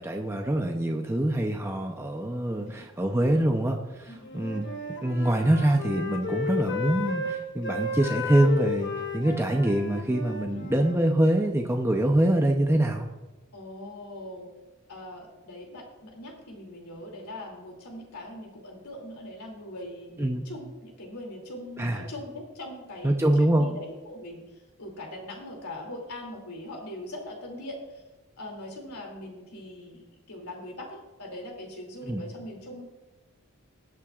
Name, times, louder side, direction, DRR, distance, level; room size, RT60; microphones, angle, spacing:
voice 1, 0.0-4.7 5.0-13.1 20.2-20.4 21.8-22.1 23.0-23.7 32.1-32.2, right 1 dB, 10° right, 2 dB, 0.6 m, -25 dB
Wind instrument woodwind instrument, 4.2-11.0, left 3 dB, 55° left, 1.3 m, -33 dB
voice 2, 13.5-14.5 14.9-28.0 28.4-32.8, left 1 dB, 85° left, 0 dB, 2.7 m, -41 dB
20.5 x 8.7 x 2.4 m, 1.1 s
head